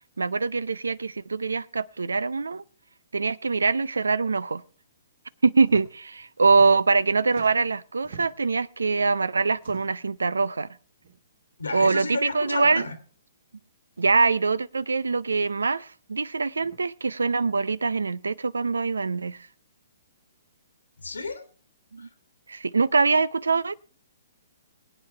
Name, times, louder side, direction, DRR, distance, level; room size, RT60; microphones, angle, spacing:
voice 1, 0.2-2.6 3.1-4.6 5.4-10.7 11.7-12.8 14.0-19.4 21.9-22.1 22.5-23.8, right 4 dB, 75° right, 0.5 m, -23 dB
sound 1, 5.6-5.9 6.2-7.0 7.3-8.5 9.5-10.1 11.0-11.2 11.5-11.6 12.5-12.8 13.9-14.0 15.2-15.5 16.6-16.8, right 6 dB, 55° right, 2.1 m, -47 dB
voice 2, 11.6-12.9 21.0-21.5 22.0-22.1, left 3 dB, 80° left, 2.5 m, -32 dB
23.0 x 8.8 x 3.3 m
figure-of-eight pair, 125°, 0 cm